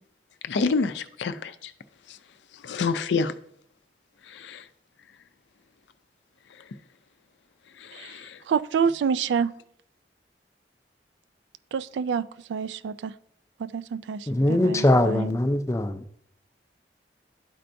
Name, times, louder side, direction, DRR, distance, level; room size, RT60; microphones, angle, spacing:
voice 1, 0.4-1.7 2.1-2.2 2.6-3.3 4.3-4.6 7.8-8.4, left 4 dB, 80° left, 0.5 m, -28 dB
voice 2, 8.5-9.5 11.7-13.1 13.6-15.4, right 6 dB, 80° right, 0.3 m, -28 dB
voice 3, 14.3-16.2, left 1 dB, 15° left, 0.4 m, -22 dB
11.5 x 4.4 x 2.6 m
head